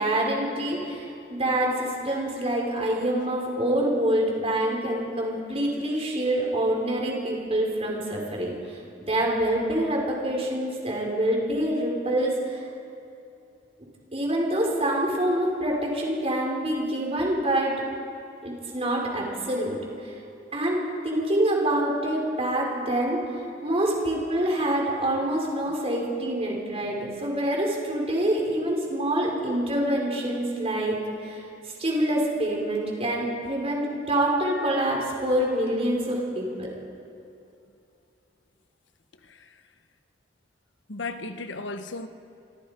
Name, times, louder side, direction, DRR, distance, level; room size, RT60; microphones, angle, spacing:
voice 1, 0.0-8.5 9.0-12.6 14.1-17.7 18.4-20.1 20.5-23.2 23.6-31.0 31.2-31.4 31.8-36.7, right 1 dB, 35° right, -1 dB, 5.4 m, -26 dB
voice 2, 40.9-42.1, left 3 dB, 90° left, 9 dB, 1.2 m, -35 dB
26.5 x 26.0 x 5.3 m, 2.6 s
head